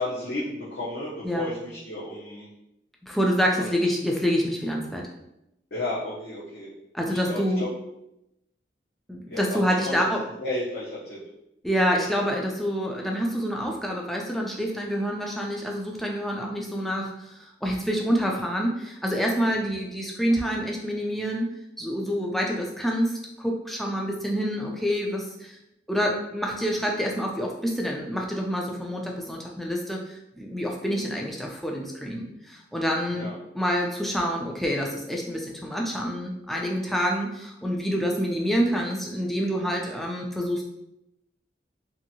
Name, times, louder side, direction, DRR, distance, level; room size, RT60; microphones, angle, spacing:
voice 1, 0.0-2.5 3.6-3.7 5.7-6.7 7.1-7.7 9.3-10.0 10.4-11.2 33.1-33.3, left 2 dB, 60° left, -9 dB, 0.7 m, -33 dB
voice 2, 3.0-5.1 6.9-7.6 9.1-10.2 11.6-17.1 17.6-21.5 21.8-25.6 25.9-33.3 33.5-40.6, equal, ahead, -1 dB, 0.3 m, -27 dB
2.7 x 2.6 x 2.7 m, 0.85 s
head